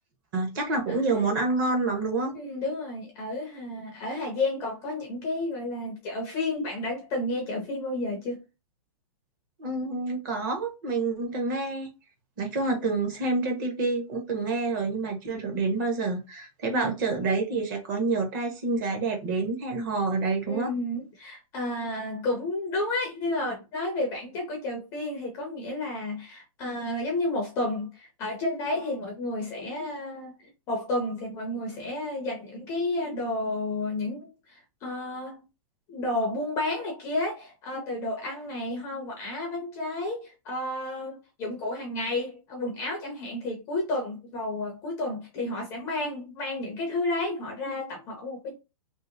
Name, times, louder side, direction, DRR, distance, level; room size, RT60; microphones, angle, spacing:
voice 1, 0.3-2.4 9.6-11.9 12.4-20.7, right 3 dB, 35° right, 0.8 m, -28 dB
voice 2, 2.3-8.4 16.6-16.9 20.5-35.4 35.9-48.6, left 2 dB, 15° left, 0.5 m, -31 dB
2.9 x 2.8 x 2.5 m
hypercardioid pair, 170°, 18 cm